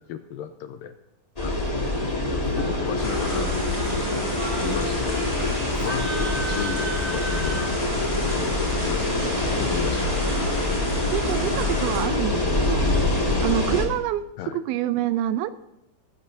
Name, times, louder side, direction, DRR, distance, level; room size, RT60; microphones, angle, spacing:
voice 1, 0.1-0.9 1.4-1.6 2.6-3.5 4.6-5.2 5.8-6.1 6.4-7.7 8.2-9.2 9.6-10.3 12.3-12.9 14.4-14.6, left 10 dB, 80° left, 8 dB, 2.1 m, -34 dB
sound 1, 1.4-13.9, left 2 dB, 40° left, 0.5 m, -25 dB
Singing, 1.7-7.8, right 2 dB, 30° right, 1.6 m, -35 dB
sound 2, 3.0-12.0, equal, 5° left, 5.6 m, -35 dB
voice 2, 11.1-12.9 13.4-15.5, right 12 dB, 80° right, 12 dB, 2.4 m, -27 dB
19.0 x 15.5 x 2.7 m, 0.87 s
omnidirectional pair, 4.5 m